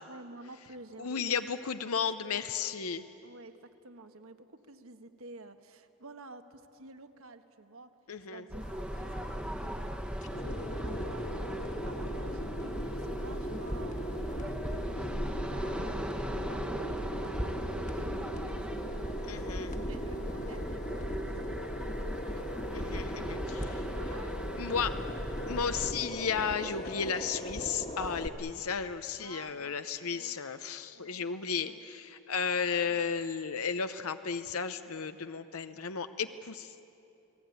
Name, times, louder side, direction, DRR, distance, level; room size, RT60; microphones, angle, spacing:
voice 1, 0.1-1.2 2.2-2.7 3.2-3.5 3.8-7.9 8.3-11.5 11.8-22.0 22.3-22.5 23.5-24.4 25.0-25.1 29.2-29.7 30.0-30.3 30.9-31.2 31.6-31.9 32.9-33.1, right 2 dB, 70° right, 8 dB, 1.4 m, -51 dB
voice 2, 1.0-3.1 8.1-8.4 19.2-19.7 22.7-23.9 24.6-25.0 25.5-36.8, left 6 dB, 80° left, 10 dB, 0.7 m, -34 dB
sound 1, 8.5-25.9, equal, 5° right, 1.0 m, -38 dB
sound 2, 8.6-28.3, equal, 35° left, 1.6 m, -39 dB
29.0 x 19.0 x 9.3 m, 2.9 s
head